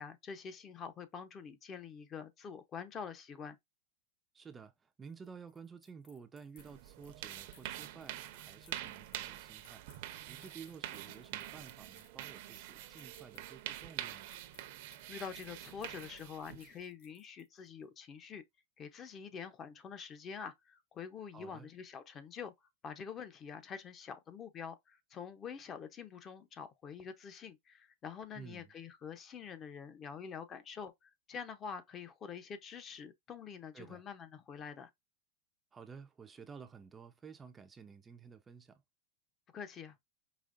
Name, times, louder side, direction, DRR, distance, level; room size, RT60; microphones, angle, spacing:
voice 1, 0.0-3.6 15.1-18.4 18.8-22.5 22.8-34.9 39.5-40.0, left 6 dB, 25° left, 0.7 m, -46 dB
voice 2, 4.3-9.8 10.2-14.3 21.3-21.7 28.3-28.7 33.7-34.0 35.7-38.8, right 6 dB, 15° right, 0.4 m, -53 dB
sound 1, 5.1-17.7, left 6 dB, 70° left, 2.1 m, -64 dB
sound 2, 6.6-16.8, right 14 dB, 60° right, 0.6 m, -46 dB
5.0 x 3.0 x 2.5 m
supercardioid pair, 140°, 0 cm